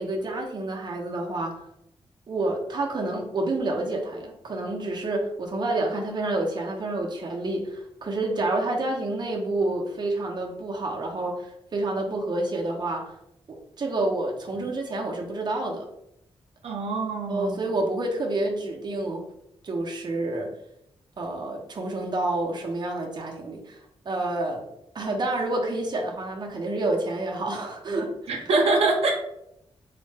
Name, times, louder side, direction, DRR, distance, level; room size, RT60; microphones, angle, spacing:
voice 1, 0.0-1.6 2.3-13.1 13.5-15.9 17.3-19.3 19.6-20.5 21.2-24.7 24.9-28.5, right 2 dB, 45° right, 0 dB, 0.7 m, -29 dB
voice 2, 16.6-17.6 28.3-29.1, right 3 dB, 75° right, 0 dB, 0.6 m, -24 dB
4.0 x 2.1 x 3.2 m, 0.81 s
wide cardioid pair, 105°, 10 cm